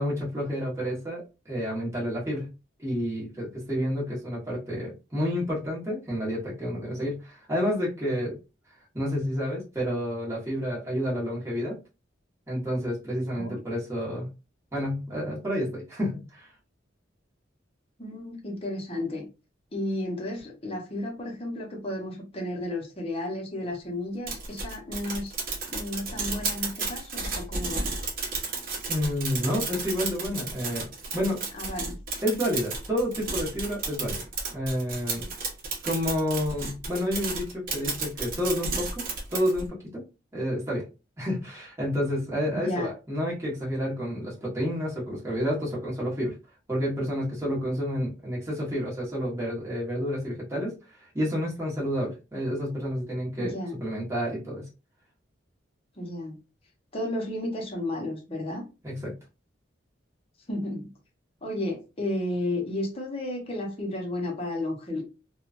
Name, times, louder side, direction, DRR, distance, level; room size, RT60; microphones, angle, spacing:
voice 1, 0.0-2.5 2.8-8.4 8.9-11.8 12.5-14.3 14.7-16.5 28.9-31.4 32.2-34.2 34.5-35.2 35.8-39.0 39.3-39.7 39.9-40.0 40.3-40.8 41.2-46.3 46.7-50.7 51.1-54.7 58.8-59.1, equal, 15° right, 1.1 m, -29 dB
voice 2, 18.0-19.3 19.7-25.3 25.7-27.9 31.5-32.0 42.5-42.9 53.4-53.8 56.0-56.4 56.9-58.6 60.5-60.9 61.4-65.0, left 1 dB, 30° left, 0.8 m, -33 dB
sound 1, 24.3-39.7, right 4 dB, 50° right, 0.9 m, -33 dB
3.0 x 2.3 x 2.4 m
head